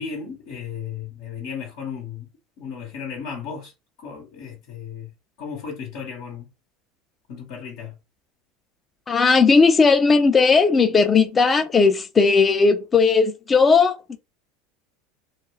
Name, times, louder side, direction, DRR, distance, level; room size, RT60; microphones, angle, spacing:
voice 1, 0.0-2.3 2.6-3.7 4.0-5.1 5.4-6.5 7.3-8.0, left 6 dB, 65° left, 0.8 m, -34 dB
voice 2, 9.1-14.2, left 4 dB, 25° left, 0.5 m, -17 dB
2.4 x 2.2 x 3.2 m
hypercardioid pair, 85°, 0 cm